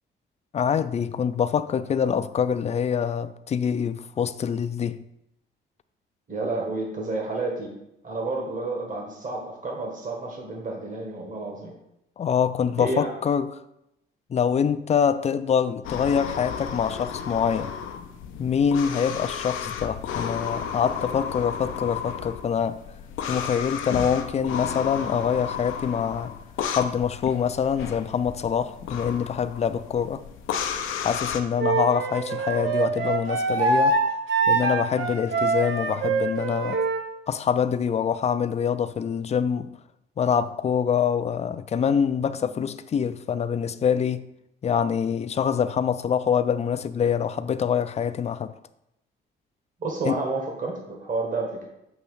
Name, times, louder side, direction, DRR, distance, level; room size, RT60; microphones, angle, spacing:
voice 1, 0.5-5.0 12.2-13.6 14.3-17.8 18.4-22.8 23.3-26.3 26.7-30.2 31.0-34.0 34.5-36.8 37.3-39.8 40.2-44.3 44.6-48.5 50.1-50.2, left 7 dB, 35° left, 0.4 m, -25 dB
voice 2, 6.3-7.7 8.0-11.7 12.8-13.1 49.8-51.7, right 3 dB, 40° right, 1.5 m, -30 dB
sound 1, 15.8-31.4, left 7 dB, 90° left, 0.6 m, -33 dB
Wind instrument woodwind instrument, 31.6-37.0, right 3 dB, 80° right, 1.1 m, -24 dB
7.0 x 3.0 x 5.5 m
cardioid pair, 90°, 20 cm